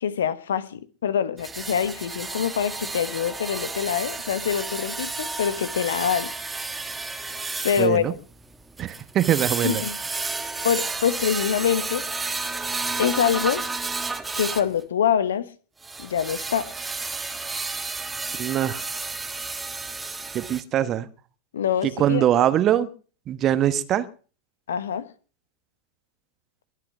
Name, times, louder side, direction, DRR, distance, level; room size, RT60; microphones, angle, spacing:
voice 1, 0.0-6.3 7.6-8.0 9.6-10.0 10.6-12.0 13.0-13.6 14.3-15.5 16.0-16.7 21.5-22.3 24.7-25.1, left 8 dB, 65° left, 1.2 m, -25 dB
sound 1, 1.4-14.7 15.8-20.6, right 3 dB, 10° right, 1.3 m, -32 dB
voice 2, 7.8-8.1 8.8-9.8 18.4-18.8 20.3-21.1 21.8-22.9 23.3-24.1, right 11 dB, 30° right, 1.3 m, -22 dB
22.5 x 8.5 x 6.0 m
figure-of-eight pair, 90°, 0 cm